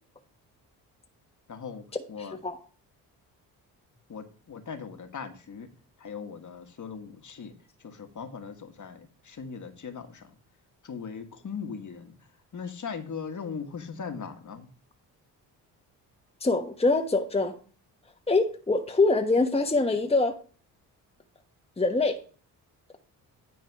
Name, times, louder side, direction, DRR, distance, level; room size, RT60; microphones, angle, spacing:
voice 1, 1.5-2.4 4.1-5.7 6.0-7.5 7.8-10.3 10.8-12.1 12.5-14.7, left 6 dB, 40° left, 1.6 m, -39 dB
voice 2, 2.2-2.6 16.4-17.5 18.3-20.4 21.8-22.2, left 3 dB, 15° left, 1.2 m, -24 dB
9.8 x 4.7 x 4.7 m
hypercardioid pair, 50°, 45 cm